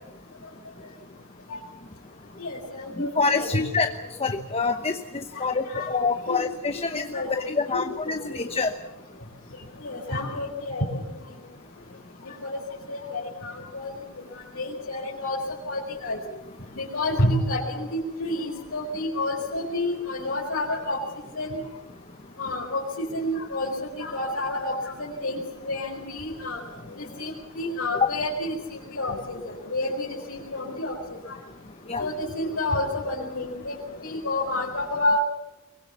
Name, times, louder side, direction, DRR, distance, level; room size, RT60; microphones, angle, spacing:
voice 1, 2.4-3.7 5.3-6.4 6.7-7.3 7.7-7.9 8.3-8.4 9.8-11.0 12.2-12.5 12.9-13.9 14.3-15.4 15.7-16.2 16.7-21.0 21.3-21.6 22.4-22.8 23.1-25.4 25.6-26.6 27.0-31.0 31.3-31.4 32.0-35.2, left 1 dB, 70° left, -5 dB, 4.8 m, -29 dB
voice 2, 3.0-3.9 4.2-8.7 31.9-32.0, left 4 dB, 25° left, 8 dB, 0.9 m, -26 dB
23.5 x 22.5 x 7.2 m, 1.0 s
head